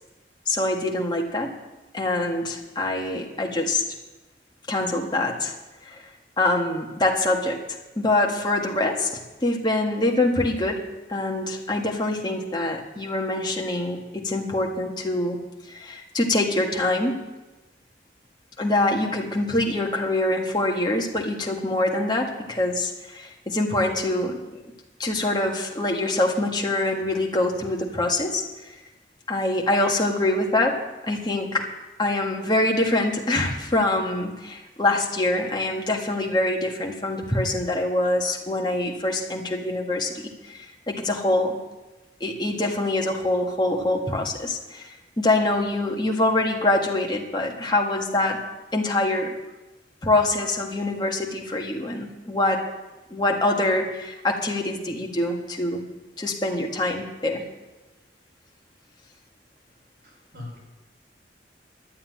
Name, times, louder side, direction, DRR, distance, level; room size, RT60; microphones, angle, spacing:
voice 1, 0.5-1.6 1.9-3.8 4.7-5.5 5.8-6.0 6.4-7.6 7.9-10.8 11.1-15.4 15.7-17.2 18.6-24.6 25.0-28.8 29.3-31.7 32.0-41.6 42.2-48.4 48.7-49.3 50.0-52.6 53.1-55.8 56.2-57.4, left 2 dB, 25° left, 1 dB, 1.7 m, -24 dB
voice 2, 60.0-60.6, left 2 dB, 60° right, -2 dB, 5.7 m, -40 dB
12.0 x 8.6 x 9.4 m, 1.1 s
head